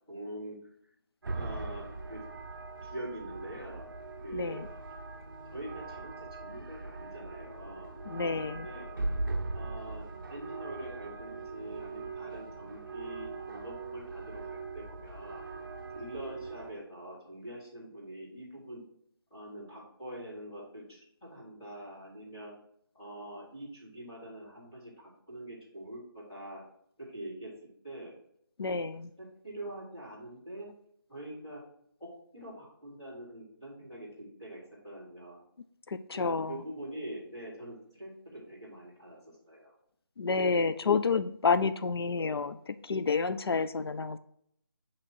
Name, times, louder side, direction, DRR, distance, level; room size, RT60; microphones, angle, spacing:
voice 1, 0.1-0.6 1.3-2.2 2.8-3.9 4.2-4.6 5.5-8.0 8.4-8.9 9.5-15.4 15.9-18.8 19.3-22.5 23.0-26.6 27.0-27.5 27.8-28.1 28.9-30.7 31.1-31.6 32.0-35.4 36.1-39.7, right 1 dB, 15° left, -9 dB, 2.4 m, -44 dB
sound 1, 1.2-16.7, right 3 dB, 55° right, 0.7 m, -40 dB
voice 2, 4.3-4.7 8.1-8.7 28.6-29.1 35.9-36.6 40.2-44.2, left 4 dB, 80° left, 12 dB, 0.4 m, -29 dB
8.5 x 3.0 x 4.4 m, 0.70 s
figure-of-eight pair, 175°, 13 cm